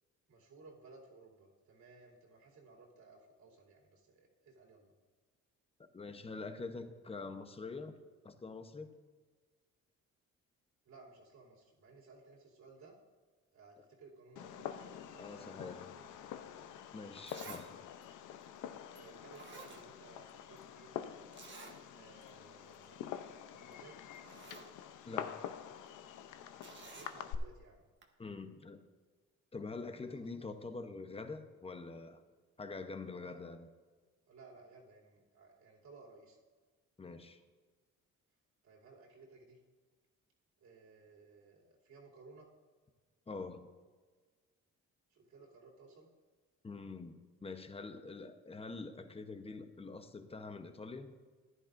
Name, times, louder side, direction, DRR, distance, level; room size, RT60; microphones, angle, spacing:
voice 1, 0.3-4.9 10.8-12.9 13.5-16.3 19.0-21.1 21.9-23.1 23.4-23.9 26.9-27.8 30.0-30.2 33.2-33.4 34.3-36.4 38.6-39.6 40.6-42.5 45.1-46.1, right 3 dB, 70° right, -4 dB, 3.0 m, -58 dB
voice 2, 5.9-8.9 15.2-15.8 16.9-17.7 25.1-25.5 28.2-28.8 29.5-32.2 32.6-33.7 37.0-37.4 43.3-43.7 46.6-51.2, left 3 dB, 20° left, 8 dB, 0.9 m, -45 dB
Fireworks, 14.4-27.4, left 10 dB, 80° left, 0.7 m, -47 dB
Zipper (clothing), 16.7-16.8 17.3-17.7 18.0-18.1 19.0-19.1 19.3-20.3 20.6-20.7 21.3-21.8 22.2-22.3 22.7-22.9 23.7-23.8 24.1-24.7 26.6-27.1 28.0-28.1, right 5 dB, 40° right, 1.4 m, -52 dB
14.5 x 11.0 x 2.6 m, 1.4 s
cardioid pair, 90°, 30 cm